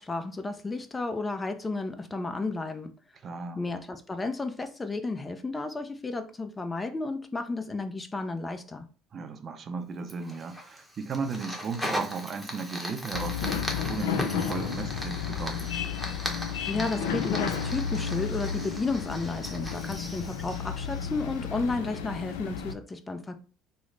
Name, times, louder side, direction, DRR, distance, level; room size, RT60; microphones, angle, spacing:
voice 1, 0.0-2.9 3.6-8.9 16.6-23.4, left 3 dB, 20° left, 0.5 m, -33 dB
voice 2, 3.2-3.6 9.1-15.7, right 4 dB, 45° right, 0.5 m, -35 dB
Fire, 10.1-21.5, equal, 5° left, 1.0 m, -38 dB
sound 1, 13.1-22.7, left 7 dB, 85° left, 0.3 m, -32 dB
3.1 x 2.0 x 3.8 m
supercardioid pair, 75°, 0 cm